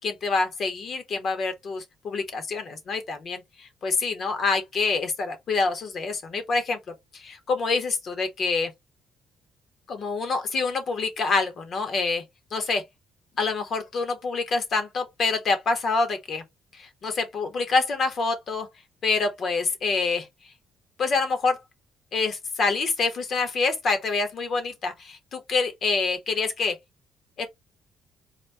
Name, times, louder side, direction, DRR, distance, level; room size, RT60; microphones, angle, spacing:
voice 1, 0.0-6.8 7.1-8.7 9.9-12.2 12.5-12.8 13.4-16.4 16.7-18.7 19.0-20.3 21.0-21.6 22.1-26.8 27.4-27.5, left 4 dB, 50° left, 1.1 m, -26 dB
4.1 x 2.2 x 3.3 m
cardioid pair, 130°, 0 cm